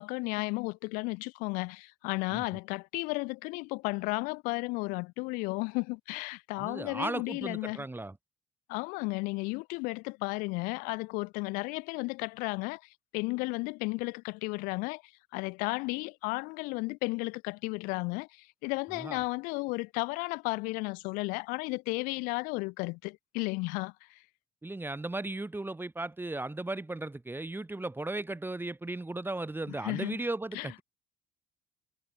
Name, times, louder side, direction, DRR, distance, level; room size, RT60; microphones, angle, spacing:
voice 1, 0.0-7.9 8.7-12.8 13.1-15.0 15.3-24.2 29.7-30.2 30.5-30.7, left 27 dB, 75° left, 7.5 m, -34 dB
voice 2, 6.6-8.1 19.0-19.2 24.6-30.8, right 2 dB, 15° right, 2.8 m, -36 dB
hypercardioid pair, 55°, 14 cm